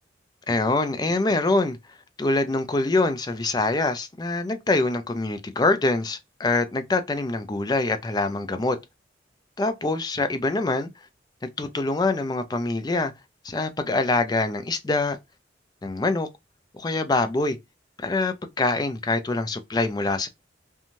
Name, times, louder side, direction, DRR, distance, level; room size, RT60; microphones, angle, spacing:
voice 1, 0.5-1.8 2.2-8.8 9.6-10.9 11.4-13.1 13.4-15.2 15.8-16.3 16.7-17.6 18.0-20.3, left 2 dB, 20° left, 0.4 m, -24 dB
2.6 x 2.2 x 2.9 m
head